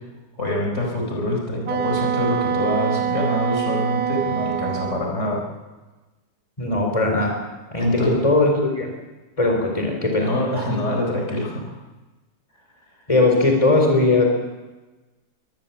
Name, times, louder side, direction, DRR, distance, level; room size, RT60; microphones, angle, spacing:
voice 1, 0.4-5.4 7.8-8.2 10.2-11.8, left 1 dB, 45° left, 0 dB, 4.7 m, -25 dB
Wind instrument woodwind instrument, 1.7-5.1, right 8 dB, 70° right, 1.3 m, -25 dB
voice 2, 6.6-7.3 7.7-7.9 8.2-8.9 9.4-10.3 10.7-10.8 13.1-14.2, left 2 dB, 20° left, 2 dB, 4.4 m, -19 dB
23.0 x 19.0 x 7.2 m, 1.2 s
omnidirectional pair, 1.7 m